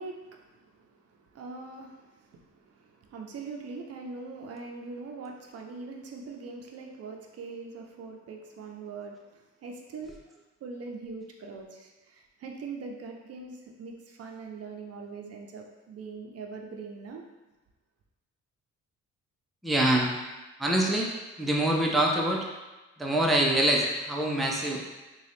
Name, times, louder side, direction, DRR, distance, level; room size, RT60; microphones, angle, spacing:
voice 1, 0.0-10.2 10.6-17.2, right 4 dB, 55° right, 1 dB, 0.5 m, -42 dB
voice 2, 19.6-20.2 20.6-21.1 21.4-22.5 23.0-24.8, right 1 dB, ahead, -2 dB, 0.5 m, -25 dB
3.7 x 2.3 x 3.4 m, 1.1 s
cardioid pair, 90°, 30 cm